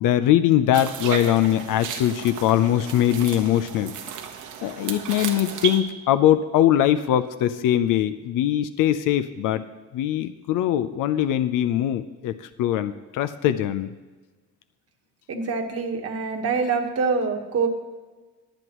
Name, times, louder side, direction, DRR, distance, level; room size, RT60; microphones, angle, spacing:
voice 1, 0.0-3.9 4.6-9.6 9.9-13.9, left 11 dB, 85° left, 10 dB, 0.6 m, -21 dB
sound 1, 0.7-5.8, right 7 dB, 75° right, 1.3 m, -34 dB
voice 2, 15.3-17.7, right 4 dB, 50° right, 3 dB, 1.4 m, -25 dB
22.0 x 8.0 x 3.0 m, 1.3 s
cardioid pair, 145°, 31 cm